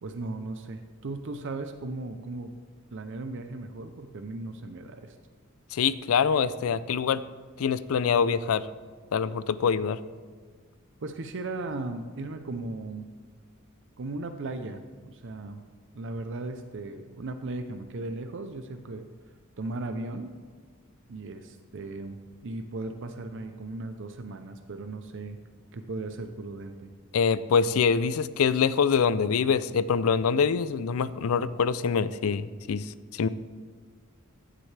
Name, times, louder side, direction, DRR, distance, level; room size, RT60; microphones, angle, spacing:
voice 1, 0.0-2.5 2.9-5.1 11.0-13.1 14.0-15.6 15.9-19.1 19.6-20.3 21.1-22.2 22.4-25.4 25.7-26.9, right 2 dB, 60° right, 7 dB, 0.6 m, -37 dB
voice 2, 5.7-7.2 7.6-8.7 9.1-10.0 27.1-33.3, left 6 dB, 85° left, 16 dB, 0.4 m, -25 dB
15.0 x 7.6 x 3.3 m, 1.5 s
head